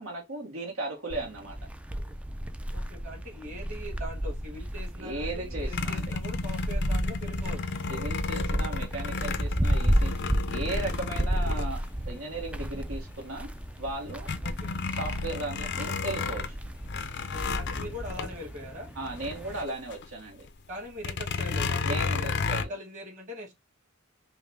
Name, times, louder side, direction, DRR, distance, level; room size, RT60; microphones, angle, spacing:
voice 1, 0.0-1.6 5.0-6.1 7.9-13.5 13.8-14.3 14.9-16.4 18.9-20.5 21.8-22.7, right 2 dB, 70° right, 1.2 m, -36 dB
sound 1, 1.1-19.6, equal, 5° right, 0.3 m, -33 dB
voice 2, 2.7-7.6 14.4-14.8 17.3-18.9 20.7-23.5, left 1 dB, 35° right, 1.8 m, -42 dB
sound 2, 5.7-12.4 12.9-13.0 13.4-20.1 20.3-20.5 21.0-22.6, left 4 dB, 55° left, 0.5 m, -33 dB
5.3 x 2.1 x 3.4 m
head